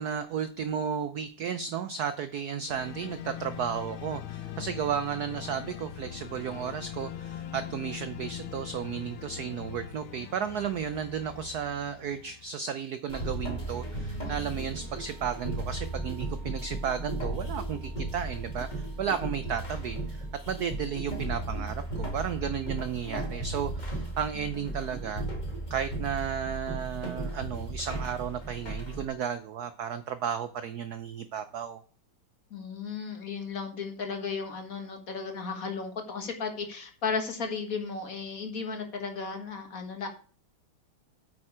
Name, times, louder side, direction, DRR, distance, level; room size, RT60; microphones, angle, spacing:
voice 1, 0.0-25.2 25.7-31.8, right 8 dB, 70° right, 12 dB, 0.9 m, -33 dB
sound 1, 2.7-12.5, left 10 dB, 70° left, 1.5 m, -41 dB
sound 2, 13.1-29.0, right 1 dB, 20° left, 2.0 m, -35 dB
voice 2, 32.5-40.1, left 5 dB, 45° left, 5 dB, 1.8 m, -35 dB
8.9 x 8.6 x 4.9 m, 0.43 s
omnidirectional pair, 2.3 m